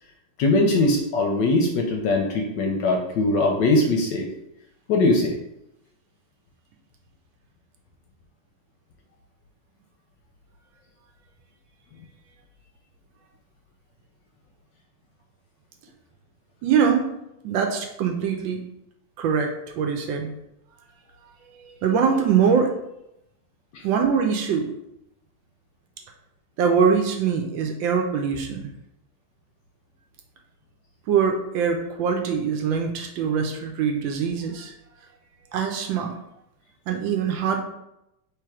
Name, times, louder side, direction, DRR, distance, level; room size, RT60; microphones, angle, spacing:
voice 1, 0.4-4.3 4.9-5.4 23.7-23.8, left 2 dB, 70° left, 2 dB, 1.1 m, -21 dB
voice 2, 16.6-17.1 17.4-18.6 19.2-19.5 19.8-20.3 21.6-22.7 23.8-24.7 26.6-28.7 31.1-34.7 35.5-36.1 36.9-37.6, right 6 dB, 75° right, 3 dB, 1.2 m, -23 dB
3.3 x 3.3 x 4.7 m, 0.84 s
omnidirectional pair, 2.3 m